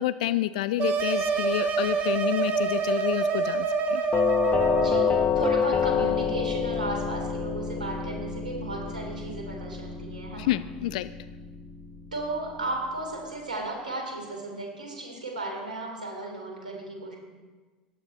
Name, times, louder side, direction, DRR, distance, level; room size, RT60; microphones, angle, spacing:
voice 1, 0.0-4.0 10.4-11.1, left 14 dB, 65° left, 14 dB, 0.4 m, -29 dB
sound 1, 0.8-5.3, right 5 dB, 40° right, 1.7 m, -26 dB
Doorbell, 4.1-13.0, left 7 dB, 30° left, 1.0 m, -28 dB
voice 2, 4.8-10.5 12.1-17.2, right 2 dB, 85° right, 1 dB, 3.0 m, -34 dB
15.0 x 9.6 x 4.2 m, 1.3 s
figure-of-eight pair, 80°, 4 cm